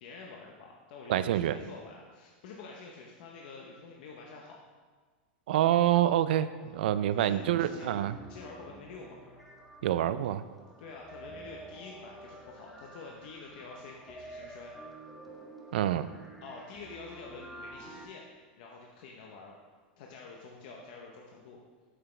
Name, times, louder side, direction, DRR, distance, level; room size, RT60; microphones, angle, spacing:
voice 1, 0.0-4.6 6.6-6.9 7.1-7.9 8.2-9.5 10.8-14.7 16.4-18.2 18.6-19.6 20.0-21.6, left 4 dB, 60° left, -1 dB, 0.8 m, -48 dB
voice 2, 1.1-1.6 5.5-8.1 9.8-10.4 15.7-16.1, right 12 dB, 80° right, 13 dB, 0.3 m, -26 dB
sound 1, 7.4-18.1, right 1 dB, 5° left, 0.8 m, -49 dB
7.7 x 6.0 x 3.3 m, 1.5 s
supercardioid pair, 155°, 5 cm